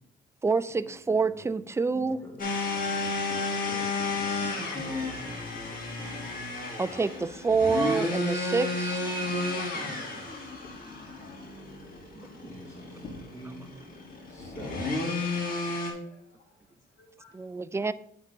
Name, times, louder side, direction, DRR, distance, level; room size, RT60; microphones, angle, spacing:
voice 1, 0.4-2.2 6.8-9.0 13.4-13.5 17.3-17.9, right 4 dB, 15° right, 15 dB, 0.3 m, -27 dB
voice 2, 1.1-1.5 1.9-2.5 3.3-5.2 5.7-6.2 9.0-10.2 12.1-13.7 14.3-15.0, right 1 dB, 15° left, 0 dB, 2.4 m, -46 dB
sound 1, 2.4-15.9, left 3 dB, 45° left, 2.5 m, -32 dB
voice 3, 11.1-11.7 12.3-12.5 16.0-17.4, left 3 dB, 65° left, -3 dB, 1.9 m, -60 dB
8.5 x 4.0 x 5.3 m, 0.70 s
cardioid pair, 90°, 20 cm